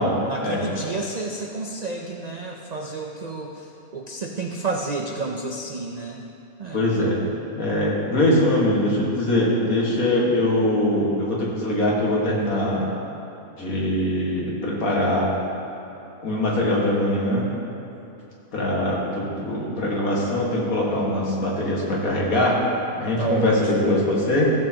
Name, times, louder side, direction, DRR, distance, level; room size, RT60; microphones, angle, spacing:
voice 1, 0.2-6.2 6.6-7.2 23.2-24.0, right 3 dB, 60° right, 0 dB, 0.4 m, -31 dB
voice 2, 6.7-7.2 7.5-12.9 13.6-15.3 16.2-17.5 18.5-22.6 23.0-24.5, left 1 dB, 75° left, -4 dB, 2.1 m, -22 dB
15.0 x 7.5 x 2.9 m, 3.0 s
omnidirectional pair, 1.5 m